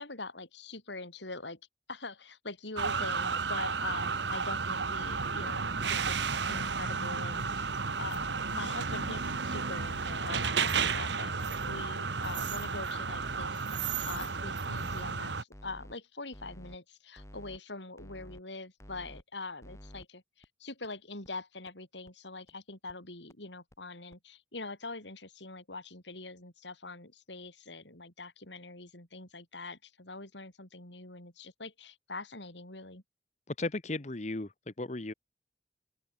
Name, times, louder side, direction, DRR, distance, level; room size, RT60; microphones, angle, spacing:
voice 1, 0.0-1.6 1.9-33.0, left 3 dB, 75° left, 5.3 m, -43 dB
sound 1, 2.8-15.4, right 5 dB, 75° right, 1.4 m, -32 dB
sound 2, 4.9-5.3 5.7-6.1 6.5-6.9 7.3-7.7 8.1-8.5 8.9-9.4 9.8-10.2 10.6-11.0 11.4-11.8 12.2-12.7 13.1-13.5 13.9-14.3 14.7-15.1 15.5-15.9 16.3-16.8 17.2-17.6 18.0-18.4 18.8-19.2 19.6-20.0 20.4-20.5 20.8-20.9 21.2-21.3 21.7-21.8 22.1-22.2 22.5-22.6 22.9-23.0 23.3-23.4 23.7-23.8 24.1-24.2, equal, 15° left, 3.7 m, -50 dB
voice 2, 33.5-35.1, left 2 dB, 40° left, 1.0 m, -36 dB
open air
head